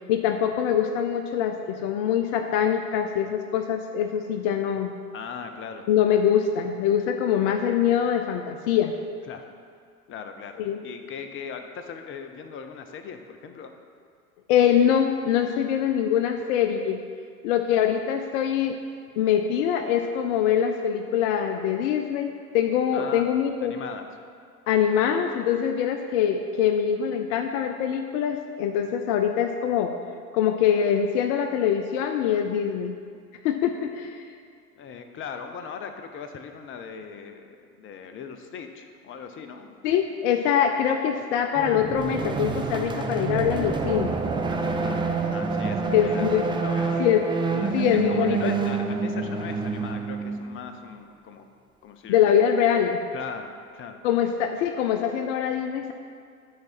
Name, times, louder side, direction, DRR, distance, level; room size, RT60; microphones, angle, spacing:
voice 1, 0.1-4.9 5.9-8.9 10.6-10.8 14.5-17.0 17.4-18.8 19.2-23.7 24.7-29.9 30.3-33.0 33.4-34.2 39.8-44.1 45.9-46.5 47.0-47.2 47.7-48.5 52.1-53.0 54.0-55.9, left 9 dB, 55° left, 6 dB, 0.6 m, -23 dB
voice 2, 5.1-5.9 9.3-9.5 10.1-13.7 22.9-23.3 23.6-24.1 34.8-39.8 44.5-47.1 47.5-51.5 51.8-52.2 53.1-54.0, left 6 dB, 30° left, 7 dB, 0.8 m, -39 dB
sound 1, 41.6-50.8, right 4 dB, 10° right, 0.6 m, -28 dB
12.0 x 4.8 x 4.3 m, 2.2 s
hypercardioid pair, 90°, 44 cm